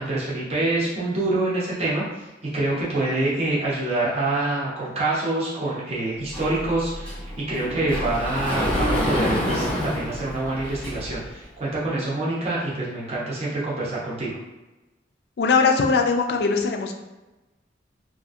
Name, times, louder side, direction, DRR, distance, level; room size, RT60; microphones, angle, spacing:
voice 1, 0.0-2.3 2.5-14.4, right 2 dB, 35° right, -7 dB, 0.7 m, -26 dB
Sliding door, 6.3-11.3, equal, 10° left, 0.8 m, -27 dB
voice 2, 15.4-16.9, left 4 dB, 60° left, 3 dB, 0.4 m, -20 dB
2.8 x 2.4 x 2.5 m, 1.1 s
head